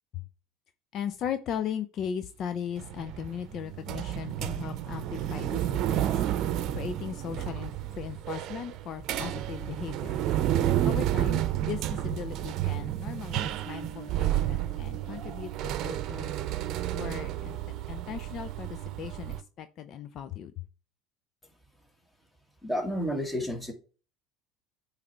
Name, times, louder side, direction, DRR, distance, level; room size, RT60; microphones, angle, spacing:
voice 1, 0.9-10.2 10.6-16.4 16.9-17.6 17.9-20.6, left 8 dB, 50° left, 10 dB, 0.5 m, -38 dB
sound 1, 2.8-19.4, right 12 dB, 60° right, 0.7 m, -31 dB
voice 2, 22.6-23.7, equal, 10° left, 4 dB, 1.9 m, -30 dB
8.5 x 3.3 x 4.6 m, 0.37 s
hypercardioid pair, 85°, 0 cm